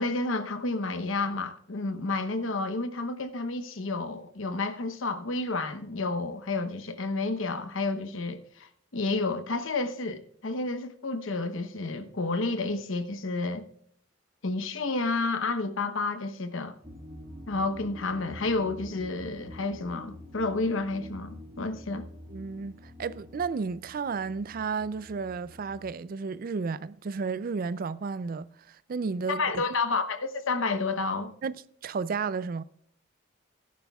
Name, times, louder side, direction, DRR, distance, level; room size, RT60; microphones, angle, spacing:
voice 1, 0.0-8.7 8.9-13.6 14.4-16.7 17.5-22.0 29.3-31.3, left 3 dB, 80° left, 0.9 m, -30 dB
sound 1, 16.8-25.8, left 1 dB, 20° right, 3.2 m, -47 dB
voice 2, 22.3-29.6 31.4-32.6, right 5 dB, 45° right, 0.4 m, -33 dB
17.0 x 10.5 x 2.3 m
head